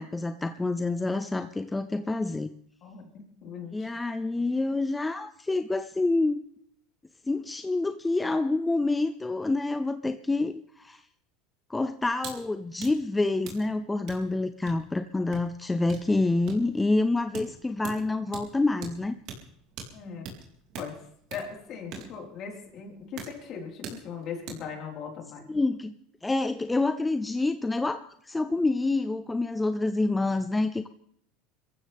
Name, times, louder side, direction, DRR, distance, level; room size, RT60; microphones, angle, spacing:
voice 1, 0.0-2.5 3.7-6.4 7.3-11.0 11.7-19.2 25.5-26.0 26.2-30.9, left 2 dB, 10° left, 10 dB, 0.6 m, -27 dB
voice 2, 3.4-3.9 19.9-20.2 20.8-25.4, left 6 dB, 50° left, 0 dB, 4.7 m, -39 dB
sound 1, 12.1-12.4 12.7-24.7, right 5 dB, 60° right, 4.3 m, -44 dB
24.0 x 14.5 x 3.6 m, 0.67 s
supercardioid pair, 115°, 0 cm